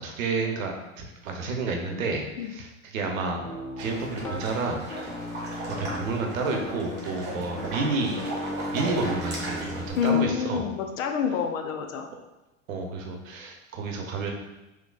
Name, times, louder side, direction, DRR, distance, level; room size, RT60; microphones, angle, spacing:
voice 1, 0.0-3.4 3.8-4.9 5.8-8.2 8.7-10.7 12.7-14.3, right 3 dB, 70° right, 2 dB, 0.8 m, -30 dB
Piano, 3.4-4.4 4.9-6.1 6.5-9.9, left 1 dB, 10° left, 0.3 m, -36 dB
sound 1, 3.8-10.1, right 2 dB, 25° right, 1.3 m, -37 dB
voice 2, 10.0-12.1, left 8 dB, 70° left, 5 dB, 0.6 m, -27 dB
3.7 x 3.1 x 2.3 m, 0.98 s
hypercardioid pair, 95°, 41 cm